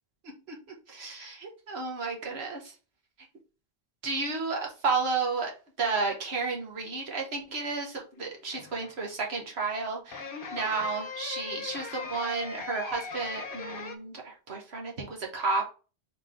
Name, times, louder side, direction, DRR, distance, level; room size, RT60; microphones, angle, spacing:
voice 1, 0.5-2.7 4.0-15.6, right 4 dB, 85° right, 1 dB, 1.5 m, -32 dB
sound 1, 8.1-9.0 10.1-14.0, left 5 dB, 65° left, 1.0 m, -39 dB
4.1 x 3.2 x 3.6 m, 0.34 s
omnidirectional pair, 1.0 m